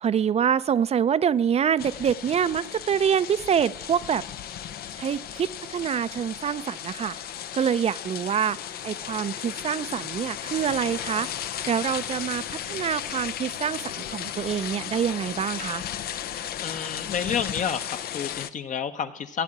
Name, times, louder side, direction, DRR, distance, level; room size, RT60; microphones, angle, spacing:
voice 1, 0.0-4.2 5.0-7.2 7.5-8.6 8.8-11.3 11.7-15.8, right 8 dB, 40° right, 13 dB, 0.5 m, -26 dB
sound 1, 1.8-18.5, left 10 dB, 65° left, 0.8 m, -35 dB
voice 2, 16.6-19.4, left 7 dB, 50° left, 9 dB, 1.3 m, -30 dB
16.0 x 7.7 x 9.9 m, 0.82 s
cardioid pair, 110°, 17 cm